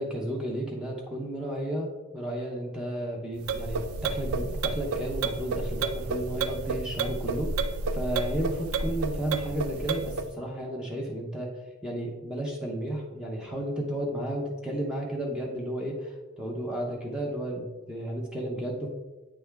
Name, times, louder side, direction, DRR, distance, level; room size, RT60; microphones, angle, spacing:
voice 1, 0.0-11.5 11.8-18.9, right 1 dB, 5° right, -2 dB, 0.7 m, -33 dB
sound 1, 3.4-10.3, right 3 dB, 80° right, 0.4 m, -31 dB
8.8 x 3.5 x 3.4 m, 1.2 s
head